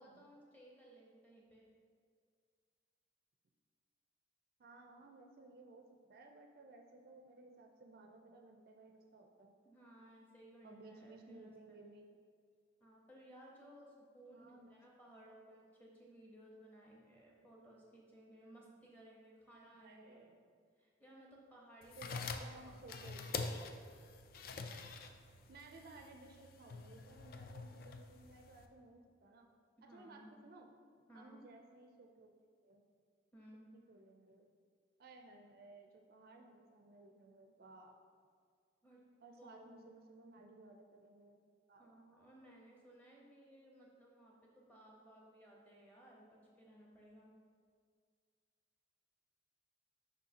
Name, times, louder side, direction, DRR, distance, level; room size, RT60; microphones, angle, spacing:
voice 1, 0.0-1.7 9.6-11.8 12.8-20.3 20.8-23.1 29.8-30.3 31.1-31.4 33.3-33.7 38.8-39.0 39.3-39.8 41.8-47.3, right 1 dB, 10° left, -3 dB, 0.9 m, -60 dB
voice 2, 4.6-9.5 10.6-12.1 14.3-14.7 19.5-20.4 22.0-23.6 25.5-29.5 29.8-30.7 31.0-32.3 32.6-32.8 33.7-34.5 35.0-38.0 39.2-41.4 41.7-42.2, right 2 dB, 50° right, 3 dB, 0.4 m, -58 dB
sound 1, 21.8-28.7, left 4 dB, 45° left, 0.3 m, -46 dB
6.3 x 5.3 x 2.8 m, 2.1 s
head